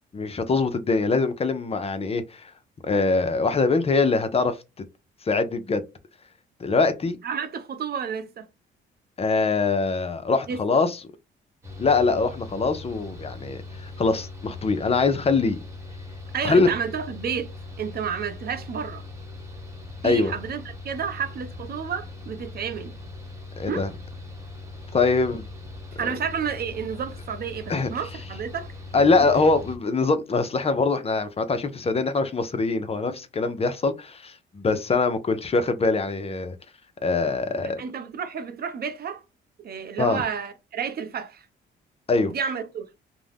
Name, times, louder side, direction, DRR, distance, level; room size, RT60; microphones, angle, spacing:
voice 1, 0.1-2.5 2.8-4.6 5.2-5.8 6.6-7.2 9.2-11.0 11.8-15.6 16.4-16.7 20.0-20.3 23.6-23.9 24.9-25.4 27.7-27.9 28.9-36.6 37.0-37.8 40.0-40.2 42.1-42.3, left 3 dB, 30° left, 0.5 m, -23 dB
voice 2, 7.2-8.5 10.5-10.6 16.3-17.5 17.8-19.0 20.0-23.0 23.7-23.8 26.0-29.3 37.6-39.2 39.6-41.5 42.3-42.9, right 7 dB, 50° right, 0.6 m, -31 dB
Mechanical fan, 11.6-29.8, left 3 dB, 15° right, 1.1 m, -40 dB
2.4 x 2.1 x 3.3 m
cardioid pair, 90°, 20 cm